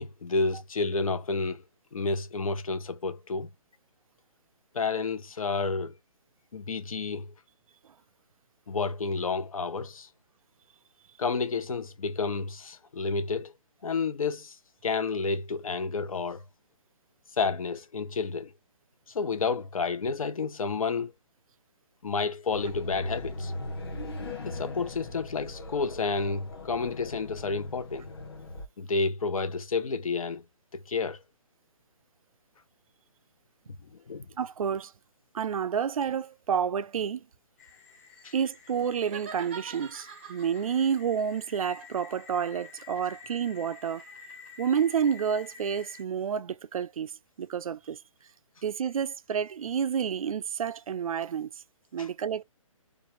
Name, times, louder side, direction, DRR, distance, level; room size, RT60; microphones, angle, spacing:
voice 1, 0.0-1.6 1.9-3.5 4.7-5.9 6.5-7.3 8.7-10.1 11.2-13.5 13.8-14.6 14.8-16.4 17.4-18.5 19.1-21.1 22.0-23.5 24.4-28.1 28.8-30.4 30.7-31.2 34.1-34.2 38.2-38.3 52.0-52.1, left 4 dB, 80° left, 0.8 m, -30 dB
Immeuble Hall Portes Voix, 22.5-28.7, left 2 dB, 45° left, 1.5 m, -39 dB
voice 2, 34.4-34.9 35.3-37.2 38.3-44.0 44.6-47.1 47.4-48.0 48.6-51.5 51.9-52.4, right 7 dB, 85° right, 0.4 m, -29 dB
sound 1, 37.6-46.0, left 5 dB, 30° left, 1.0 m, -50 dB
sound 2, 39.0-40.7 41.6-44.7, right 6 dB, 20° right, 0.5 m, -46 dB
3.2 x 2.4 x 3.0 m
hypercardioid pair, 175°, 18 cm